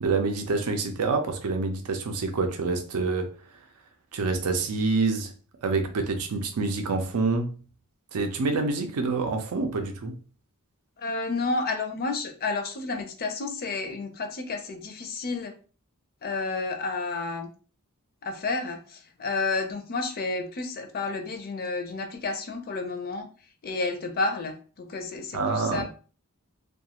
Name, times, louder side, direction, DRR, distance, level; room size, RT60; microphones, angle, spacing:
voice 1, 0.0-3.3 4.1-5.3 5.6-7.6 8.1-10.1 25.3-25.8, right 3 dB, 80° right, 0.5 m, -27 dB
voice 2, 11.0-15.6 16.2-17.5 18.2-23.3 23.6-25.8, left 3 dB, 45° left, 0.4 m, -31 dB
2.3 x 2.3 x 2.8 m
head